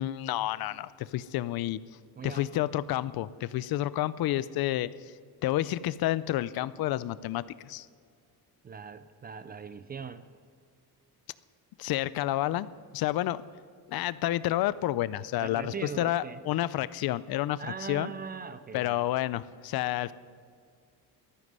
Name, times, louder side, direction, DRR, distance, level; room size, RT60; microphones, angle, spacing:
voice 1, 0.0-1.8 2.2-4.9 5.4-7.9 11.8-12.7 12.9-13.4 13.9-18.1 18.7-20.1, left 14 dB, 65° left, 17 dB, 0.5 m, -30 dB
voice 2, 2.2-2.6 8.6-10.3 15.4-16.4 17.6-19.1, right 6 dB, 25° right, 12 dB, 0.3 m, -40 dB
14.5 x 13.0 x 5.5 m, 2.2 s
cardioid pair, 175°, 38 cm